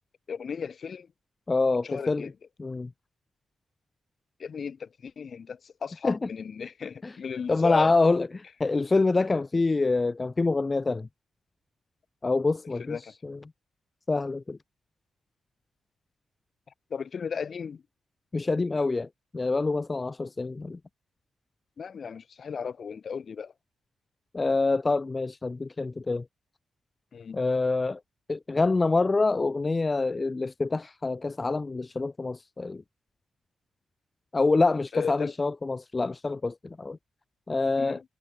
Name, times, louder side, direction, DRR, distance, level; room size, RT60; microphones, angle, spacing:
voice 1, 0.3-1.1 1.8-2.3 4.4-7.9 12.8-13.1 16.9-17.8 21.8-23.5 27.1-27.4 34.9-35.3 37.8-38.0, left 6 dB, 55° left, 3.0 m, -35 dB
voice 2, 1.5-2.3 2.6-2.9 6.0-6.3 7.0-7.2 7.5-11.1 12.2-13.0 13.2-13.4 14.1-14.6 18.3-19.1 19.3-20.8 24.3-26.3 27.3-28.0 28.3-32.8 34.3-37.0 37.5-38.0, left 3 dB, 30° left, 0.7 m, -26 dB
cardioid pair, 85°, 0 cm